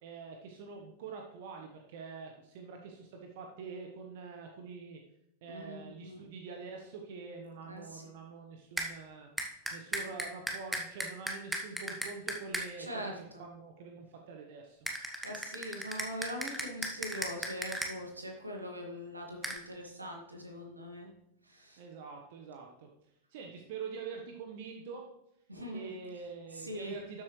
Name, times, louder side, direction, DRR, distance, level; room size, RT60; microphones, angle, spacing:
voice 1, 0.0-5.0 5.4-9.3 9.7-14.9 21.8-22.9 23.3-25.1 25.7-27.2, right 5 dB, 50° right, 3 dB, 1.2 m, -45 dB
voice 2, 5.4-6.2 7.7-8.0 12.8-13.2 15.2-21.1 21.5-21.8 25.5-25.9 26.5-26.9, equal, 80° right, 1 dB, 2.1 m, -42 dB
sound 1, 8.8-8.9 9.4-12.7 14.9-17.9 19.4-19.6, right 1 dB, 5° right, 1.4 m, -35 dB
12.5 x 7.5 x 3.2 m, 0.82 s
figure-of-eight pair, 90°, 0 cm